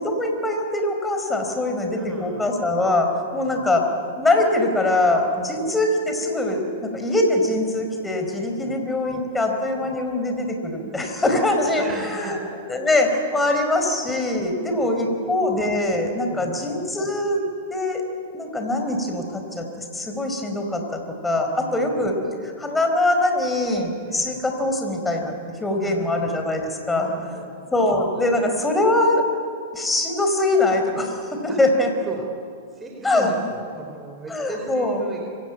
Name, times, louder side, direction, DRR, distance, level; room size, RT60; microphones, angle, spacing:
voice 1, 0.0-3.9 4.2-12.4 12.7-17.4 17.7-18.0 18.3-27.1 27.7-29.2 29.7-31.9 33.0-33.3 34.3-35.0, left 2 dB, 10° left, 3 dB, 4.6 m, -23 dB
voice 2, 1.9-2.5 3.3-3.7 5.5-5.7 8.6-8.8 9.8-10.0 11.8-12.6 13.6-13.8 14.7-15.6 16.3-16.7 21.5-22.0 24.1-24.5 25.8-26.3 26.9-27.7 31.4-31.6 32.1-32.2 32.7-35.2, right 2 dB, 15° right, 0 dB, 4.5 m, -38 dB
25.0 x 16.5 x 9.3 m, 2.3 s
hypercardioid pair, 110°, 0 cm